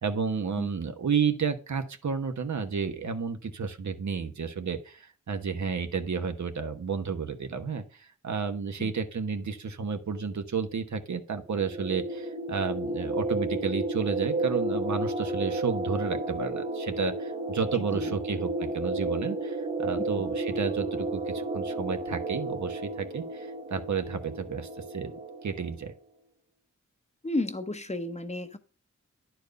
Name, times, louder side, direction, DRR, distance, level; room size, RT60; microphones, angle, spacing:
voice 1, 0.0-25.1 25.4-25.9, right 5 dB, 75° right, 7 dB, 1.1 m, -31 dB
sound 1, 11.5-25.8, right 2 dB, 30° right, 1.6 m, -32 dB
voice 2, 17.7-18.1 27.2-28.6, left 2 dB, 25° left, 9 dB, 0.8 m, -32 dB
10.5 x 4.6 x 5.2 m, 0.38 s
wide cardioid pair, 105°, 29 cm